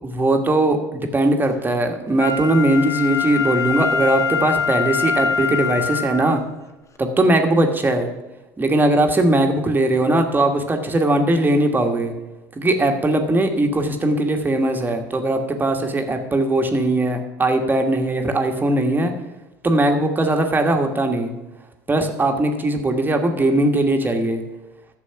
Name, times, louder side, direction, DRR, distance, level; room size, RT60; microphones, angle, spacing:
voice 1, 0.0-6.4 7.0-8.1 8.6-12.1 12.6-19.1 19.6-21.3 21.9-24.4, right 1 dB, 20° right, 4 dB, 1.5 m, -19 dB
Wind instrument woodwind instrument, 2.2-6.4 7.0-7.1, left 6 dB, 30° left, 1.3 m, -23 dB
11.5 x 7.0 x 5.8 m, 1.0 s
hypercardioid pair, 70°, 10 cm